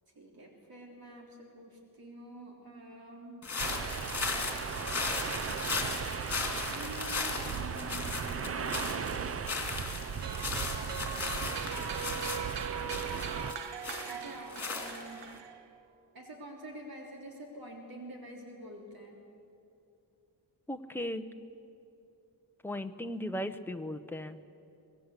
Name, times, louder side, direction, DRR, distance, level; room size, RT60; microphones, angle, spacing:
voice 1, 0.2-3.5 6.7-9.2 10.4-11.1 14.0-15.3 16.1-19.2, right 1 dB, 60° right, 1 dB, 3.5 m, -47 dB
sound 1, 3.4-15.3, left 4 dB, 35° left, 2.9 m, -37 dB
sound 2, 3.6-13.5, right 6 dB, 35° right, 0.5 m, -37 dB
sound 3, 10.2-15.8, right 7 dB, 85° right, 1.1 m, -41 dB
voice 2, 20.7-21.3 22.6-24.4, left 1 dB, 5° left, 7 dB, 0.8 m, -37 dB
24.5 x 19.5 x 8.3 m, 2.6 s
wide cardioid pair, 155°, 41 cm